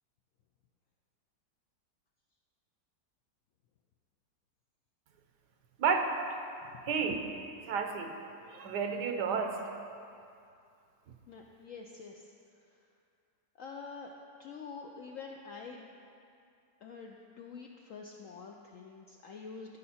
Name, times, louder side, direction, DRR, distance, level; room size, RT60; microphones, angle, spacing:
voice 1, 5.8-6.2 6.9-7.2 7.6-8.2 8.5-9.7, right 5 dB, 75° right, 5 dB, 1.3 m, -31 dB
voice 2, 11.3-12.2 13.6-14.1 14.4-15.9 16.8-19.8, left 5 dB, 75° left, 1 dB, 0.7 m, -46 dB
14.0 x 5.5 x 4.2 m, 2.5 s
omnidirectional pair, 1.9 m